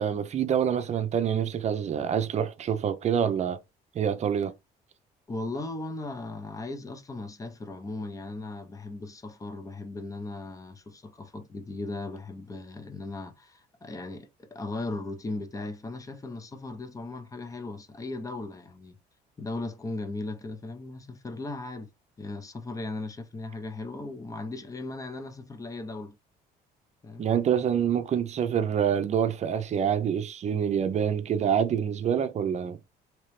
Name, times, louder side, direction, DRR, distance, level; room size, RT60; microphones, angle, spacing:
voice 1, 0.0-3.6 3.9-4.5 27.2-32.8, right 8 dB, 40° right, 0.6 m, -26 dB
voice 2, 5.3-19.0 19.4-21.9 22.2-26.2 27.0-27.3, left 2 dB, 20° left, 0.7 m, -37 dB
3.0 x 2.9 x 3.1 m
cardioid pair, 110°, 17 cm